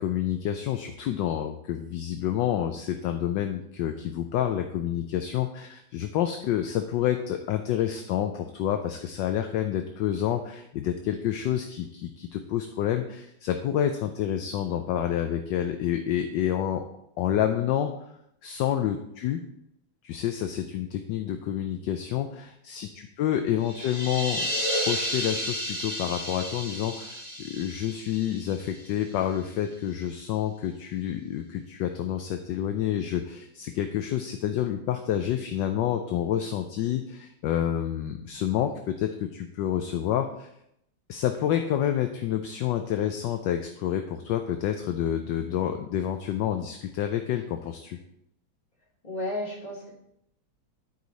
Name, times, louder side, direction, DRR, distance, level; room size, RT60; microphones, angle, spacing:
voice 1, 0.0-16.8 17.2-17.9 18.4-19.4 20.0-24.4 24.8-40.5 41.1-48.0, left 10 dB, 75° left, 7 dB, 1.2 m, -28 dB
sound 1, 23.6-29.2, equal, 25° right, 2.7 m, -32 dB
voice 2, 49.0-49.9, left 1 dB, 20° left, -5 dB, 2.7 m, -32 dB
12.0 x 4.8 x 4.0 m, 0.76 s
omnidirectional pair, 2.2 m